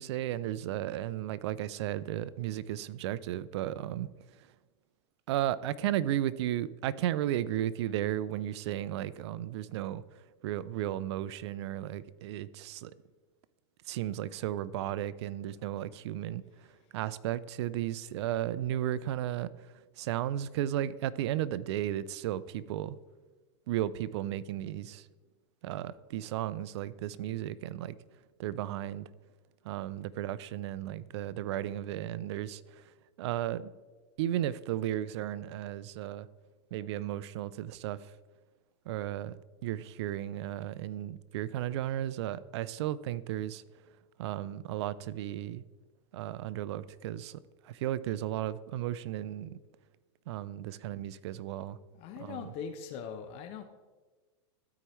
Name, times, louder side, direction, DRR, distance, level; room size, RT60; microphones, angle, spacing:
voice 1, 0.0-4.1 5.3-12.9 13.9-23.0 23.7-25.1 25.6-28.0 28.4-29.1 29.6-32.9 33.2-33.7 34.2-36.3 36.7-38.1 38.9-43.6 44.2-45.6 46.1-47.4 47.6-49.6 50.3-51.8 52.2-52.5, right 12 dB, 70° right, 0.4 m, -34 dB
voice 2, 52.0-53.6, left 7 dB, 45° left, 0.7 m, -41 dB
13.5 x 4.7 x 3.1 m
supercardioid pair, 130°, 15 cm